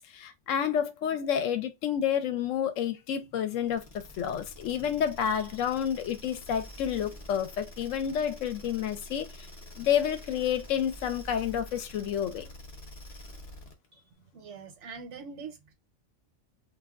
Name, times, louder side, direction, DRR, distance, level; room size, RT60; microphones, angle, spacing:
voice 1, 0.1-9.5 9.8-12.5, left 9 dB, 75° left, 0.9 m, -29 dB
sound 1, 3.7-13.9, left 1 dB, 40° left, 0.6 m, -47 dB
voice 2, 13.9-15.7, right 5 dB, 65° right, 1.0 m, -44 dB
2.4 x 2.2 x 3.4 m
omnidirectional pair, 1.4 m